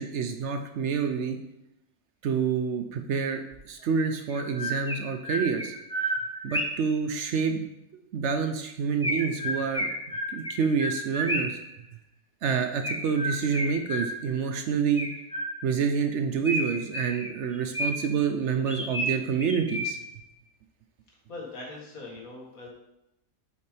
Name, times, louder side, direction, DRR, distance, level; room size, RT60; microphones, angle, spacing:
voice 1, 0.0-1.4 2.2-5.7 6.4-7.7 8.1-9.9 10.3-11.6 12.4-15.1 15.6-20.0, right 6 dB, 65° right, 6 dB, 0.8 m, -28 dB
Chirp tweet, 3.5-3.6 4.3-6.9 9.0-11.7 12.8-14.4 15.0-15.8 16.4-18.2 18.7-20.2, equal, 5° left, 0.5 m, -32 dB
voice 2, 21.3-22.7, left 2 dB, 80° left, -2 dB, 2.1 m, -41 dB
6.7 x 5.1 x 3.3 m, 0.86 s
omnidirectional pair, 1.4 m